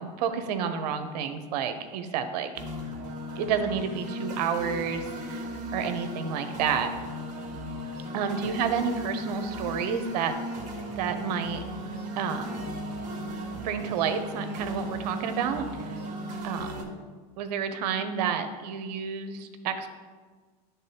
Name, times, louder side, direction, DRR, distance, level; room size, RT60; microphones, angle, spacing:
voice 1, 0.0-2.5 3.4-5.4 5.7-6.9 8.1-10.3 10.9-11.6 12.2-12.6 13.6-15.7 16.4-16.9 17.4-19.9, right 7 dB, 75° right, 9 dB, 0.7 m, -30 dB
sound 1, 2.6-16.8, equal, 35° right, 1.6 m, -36 dB
10.0 x 3.4 x 2.9 m, 1.4 s
supercardioid pair, 115°, 21 cm